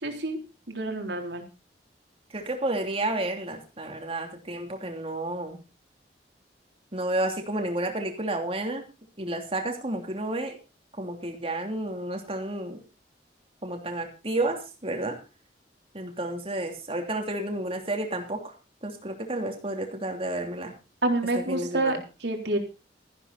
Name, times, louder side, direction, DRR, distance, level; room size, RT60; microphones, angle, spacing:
voice 1, 0.0-0.4 0.7-1.5 21.0-22.6, right 2 dB, 75° right, 3 dB, 3.6 m, -28 dB
voice 2, 2.3-5.6 6.9-8.8 9.2-10.6 11.0-12.8 13.6-14.6 14.8-15.1 15.9-18.5 18.8-20.7 21.5-21.9, right 1 dB, 35° right, 3 dB, 3.1 m, -31 dB
14.5 x 11.5 x 4.2 m, 0.31 s
head